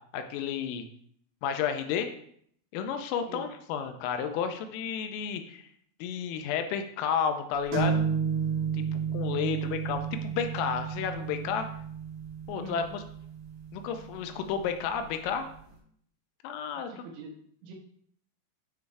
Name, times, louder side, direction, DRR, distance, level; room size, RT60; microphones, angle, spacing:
voice 1, 0.1-0.8 1.4-2.1 2.7-5.7 6.0-8.1 9.1-11.7 12.5-13.0 13.7-15.5 16.4-16.9, left 7 dB, 85° left, 7 dB, 3.2 m, -31 dB
sound 1, 7.7-15.2, right 7 dB, 55° right, 3.1 m, -32 dB
voice 2, 9.3-9.7 12.5-12.9 16.7-17.7, right 3 dB, 80° right, 1 dB, 3.1 m, -44 dB
9.2 x 3.2 x 4.7 m, 0.65 s
omnidirectional pair, 6.0 m